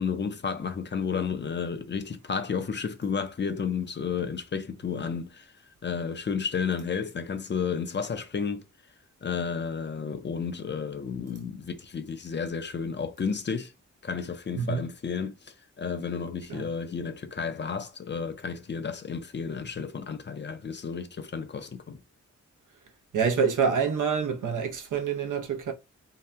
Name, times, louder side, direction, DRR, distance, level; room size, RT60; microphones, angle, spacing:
voice 1, 0.0-5.5 5.8-8.6 9.2-13.7 14.0-22.0, left 6 dB, 40° left, 0.5 m, -32 dB
voice 2, 23.1-25.7, right 6 dB, 90° right, 0.7 m, -26 dB
2.8 x 2.1 x 3.3 m
wide cardioid pair, 120°, 30 cm